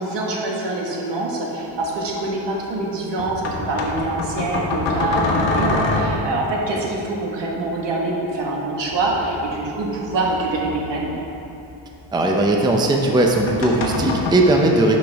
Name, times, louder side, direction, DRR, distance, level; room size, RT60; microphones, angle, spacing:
voice 1, 0.0-11.1, right 2 dB, 70° right, -2 dB, 1.5 m, -25 dB
sound 1, 1.8-1.9 3.2-6.5 8.9-11.6 13.1-14.3, left 3 dB, 80° left, 1.1 m, -25 dB
voice 2, 12.1-15.0, right 2 dB, 10° right, 1 dB, 0.5 m, -18 dB
11.0 x 5.3 x 3.4 m, 2.9 s
cardioid pair, 130°, 44 cm